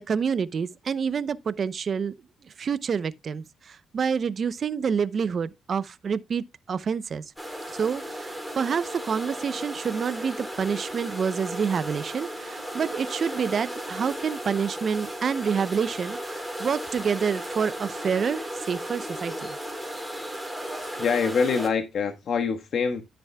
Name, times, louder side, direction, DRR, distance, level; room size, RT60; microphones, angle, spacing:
voice 1, 0.1-2.1 2.6-7.2 7.7-19.6, right 6 dB, 50° right, 0.7 m, -28 dB
sound 1, 7.4-21.7, equal, ahead, 3.9 m, -35 dB
voice 2, 21.0-23.0, left 5 dB, 60° left, 1.4 m, -25 dB
13.0 x 7.0 x 2.3 m
cardioid pair, 90°, 0 cm